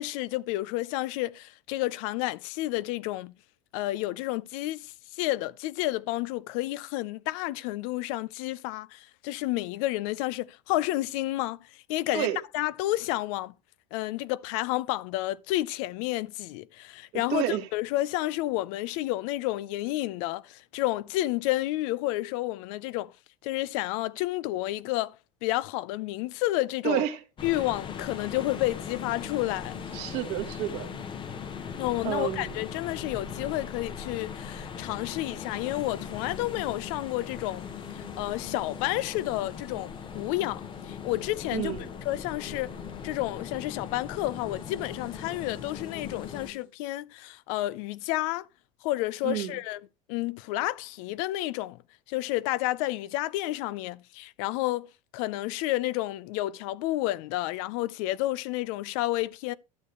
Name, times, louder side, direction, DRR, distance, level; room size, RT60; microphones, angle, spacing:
voice 1, 0.0-3.3 3.7-12.3 12.5-13.5 13.9-23.1 23.4-25.2 25.4-27.0 27.4-29.8 31.8-37.7 37.9-41.8 42.1-42.7 43.0-48.5 48.8-49.8 50.1-51.8 52.1-54.9 55.1-59.5, left 17 dB, 70° left, 0.5 m, -30 dB
voice 2, 17.1-17.7 26.8-27.2 29.9-30.9 32.0-32.6 41.5-41.9 49.2-49.6, right 13 dB, 65° right, 1.5 m, -30 dB
sound 1, 27.4-46.5, left 6 dB, 30° left, 0.8 m, -40 dB
sound 2, 27.8-46.7, left 8 dB, 85° left, 3.2 m, -46 dB
12.0 x 6.6 x 3.1 m
supercardioid pair, 110°, 17 cm